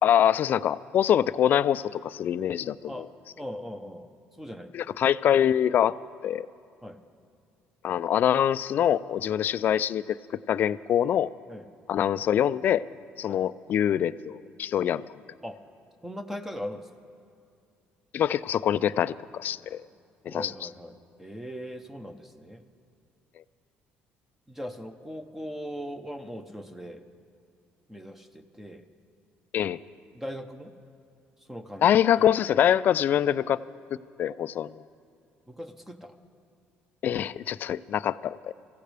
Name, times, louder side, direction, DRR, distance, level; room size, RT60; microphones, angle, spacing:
voice 1, 0.0-3.1 4.7-6.0 6.2-6.5 7.8-11.3 11.9-12.8 13.2-15.0 18.1-19.8 20.3-20.5 29.5-29.8 31.8-33.6 34.2-34.8 37.0-38.5, left 10 dB, 50° left, 17 dB, 0.4 m, -24 dB
voice 2, 3.4-4.1 4.4-4.7 6.8-7.0 11.5-11.7 13.3-13.4 15.4-15.6 16.0-16.9 20.2-20.9 21.2-22.6 24.5-27.0 27.9-28.9 30.1-30.7 31.5-31.9 32.2-32.3 35.5-36.1, equal, 5° right, 7 dB, 0.9 m, -39 dB
24.0 x 15.5 x 3.4 m, 2.4 s
cardioid pair, 105°, 4 cm